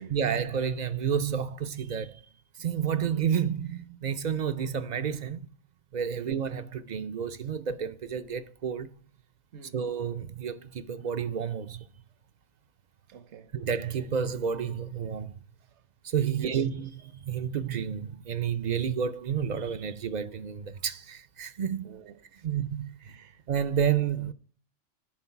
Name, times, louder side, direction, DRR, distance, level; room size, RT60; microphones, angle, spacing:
voice 1, 0.1-2.2 2.6-5.4 5.9-8.9 9.7-11.8 13.5-15.3 16.0-21.9 22.4-23.0 23.5-24.3, right 7 dB, 55° right, 0.5 m, -30 dB
voice 2, 13.1-13.6 15.7-15.8 16.3-16.7 17.3-17.4 21.8-22.5 23.0-23.4, right 6 dB, 70° right, 1.1 m, -48 dB
11.0 x 3.8 x 5.6 m
omnidirectional pair, 1.2 m